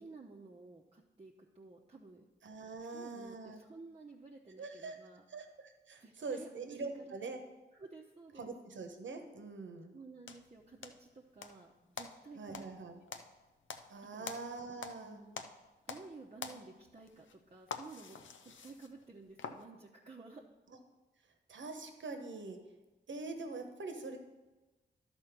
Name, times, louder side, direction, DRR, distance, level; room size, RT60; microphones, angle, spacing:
voice 1, 0.0-2.2 2.9-5.2 6.0-7.0 7.7-8.5 9.9-12.7 14.1-14.3 15.0-15.4 15.9-20.4, right 3 dB, 35° right, -2 dB, 0.8 m, -53 dB
voice 2, 2.4-3.6 4.6-5.0 5.3-7.4 8.4-9.9 12.4-13.0 13.9-15.2 20.7-20.8 21.5-22.6 23.1-24.2, right 3 dB, 75° right, 5 dB, 1.0 m, -44 dB
sound 1, 10.3-11.6 12.0-15.1 15.3-16.1 16.4-19.6, left 6 dB, 85° left, 0.6 m, -46 dB
11.5 x 4.4 x 5.9 m, 1.1 s
cardioid pair, 55°, 19 cm